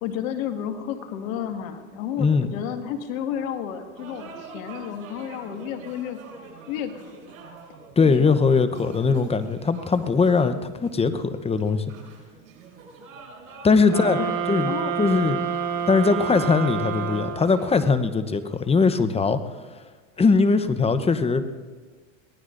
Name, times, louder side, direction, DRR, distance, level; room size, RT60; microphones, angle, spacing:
voice 1, 0.0-6.2 6.7-7.2 8.0-8.4 13.7-14.9, left 9 dB, 75° left, 6 dB, 1.8 m, -32 dB
voice 2, 2.2-2.5 8.0-11.9 13.6-14.2 14.5-15.4 15.9-19.4 20.2-21.4, left 4 dB, 15° left, 11 dB, 0.8 m, -21 dB
sound 1, 3.9-17.8, right 4 dB, 90° right, 5.7 m, -45 dB
sound 2, 13.9-17.8, right 7 dB, 50° right, 1.6 m, -28 dB
23.0 x 18.0 x 2.6 m, 1.5 s
supercardioid pair, 105°, 41 cm